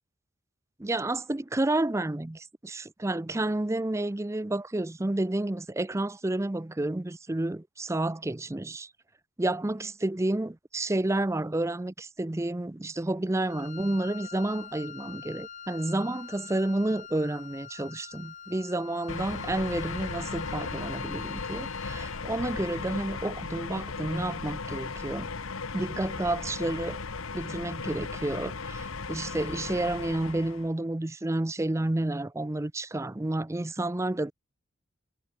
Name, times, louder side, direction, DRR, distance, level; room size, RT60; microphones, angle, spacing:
voice 1, 0.8-8.9 9.4-25.3 25.7-27.0 27.3-34.3, right 2 dB, 15° right, 0.5 m, -30 dB
Wind instrument woodwind instrument, 13.4-22.3, left 8 dB, 35° left, 1.2 m, -46 dB
sound 1, 19.1-30.7, left 4 dB, 80° left, 1.2 m, -36 dB
head